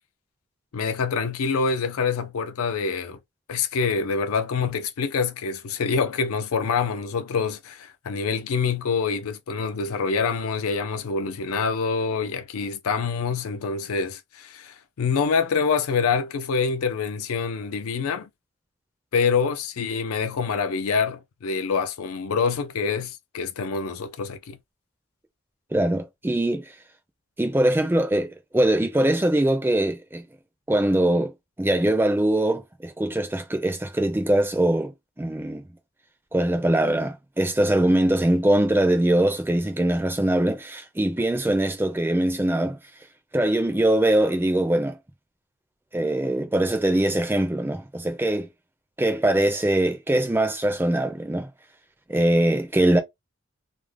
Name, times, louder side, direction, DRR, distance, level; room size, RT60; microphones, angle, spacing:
voice 1, 0.7-3.2 3.5-18.3 19.1-24.6, left 5 dB, 90° left, 0.4 m, -26 dB
voice 2, 25.7-26.7 27.4-30.2 30.7-31.3 31.6-35.6 36.3-42.8 43.3-45.0 45.9-48.5 49.0-51.5 52.1-53.0, right 1 dB, 10° right, 0.4 m, -22 dB
2.4 x 2.1 x 3.2 m
head